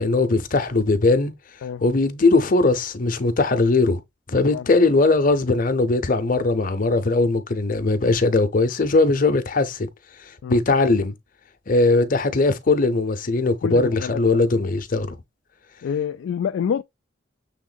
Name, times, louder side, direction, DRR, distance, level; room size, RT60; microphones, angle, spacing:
voice 1, 0.0-1.3 1.8-4.0 4.3-9.9 10.3-11.1 11.7-15.2, left 3 dB, 45° left, 0.7 m, -20 dB
voice 2, 13.6-14.5 15.8-16.8, left 7 dB, 90° left, 0.3 m, -27 dB
6.5 x 3.5 x 2.2 m
head